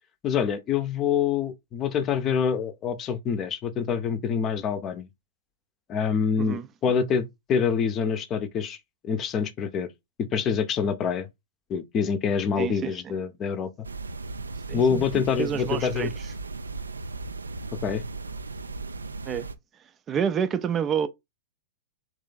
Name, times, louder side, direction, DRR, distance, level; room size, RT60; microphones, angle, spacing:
voice 1, 0.2-5.1 5.9-8.8 9.0-9.9 10.3-11.3 11.7-13.9 14.7-16.1 17.8-18.0, left 6 dB, 30° left, 0.7 m, -26 dB
voice 2, 12.6-13.1 14.7-15.0 15.4-16.3 19.3-19.5 20.1-21.1, right 7 dB, 25° right, 0.4 m, -28 dB
sound 1, 13.8-19.5, right 3 dB, 85° right, 0.4 m, -36 dB
3.3 x 3.1 x 3.8 m
figure-of-eight pair, 105°, 0 cm